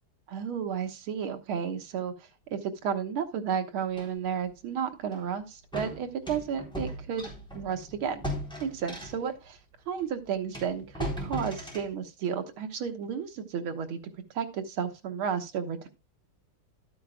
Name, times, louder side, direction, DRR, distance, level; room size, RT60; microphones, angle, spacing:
voice 1, 0.3-8.3 8.6-9.6 9.9-14.0 14.3-15.9, right 7 dB, 90° right, 6 dB, 2.1 m, -32 dB
sound 1, 4.0-4.1 5.1-5.3 5.7-9.4 10.0-10.1 10.5-11.9, equal, ahead, 3.6 m, -38 dB
12.0 x 9.2 x 2.3 m, 0.27 s
omnidirectional pair, 2.3 m